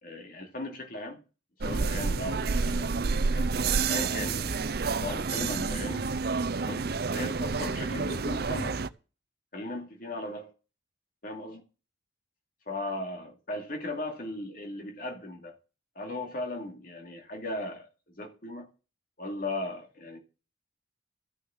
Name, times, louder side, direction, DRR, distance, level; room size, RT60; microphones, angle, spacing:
voice 1, 0.0-1.2 1.6-6.1 6.6-8.8 9.5-10.5 11.2-11.6 12.7-15.6 16.0-18.7 19.2-20.2, left 2 dB, 50° left, 2.6 m, -37 dB
sound 1, 1.6-8.9, right 4 dB, 55° right, 0.6 m, -29 dB
13.0 x 6.6 x 7.1 m
head